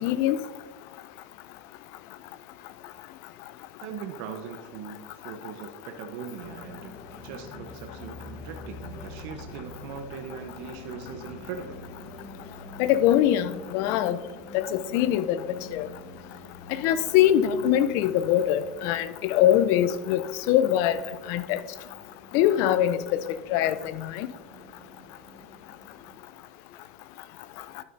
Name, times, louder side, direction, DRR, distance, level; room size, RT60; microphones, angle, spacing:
voice 1, 0.0-0.4 12.8-14.2 14.5-15.4 15.7-15.9 16.8-21.0 21.3-21.6 22.3-23.2 23.5-23.7 24.2-24.3, left 11 dB, 60° left, 14 dB, 0.5 m, -22 dB
voice 2, 3.8-6.9 7.2-11.8, right 7 dB, 60° right, 5 dB, 0.9 m, -40 dB
sound 1, 6.4-26.2, left 2 dB, 40° left, 1.7 m, -46 dB
12.0 x 6.6 x 2.6 m, 1.4 s
hypercardioid pair, 105°, 6 cm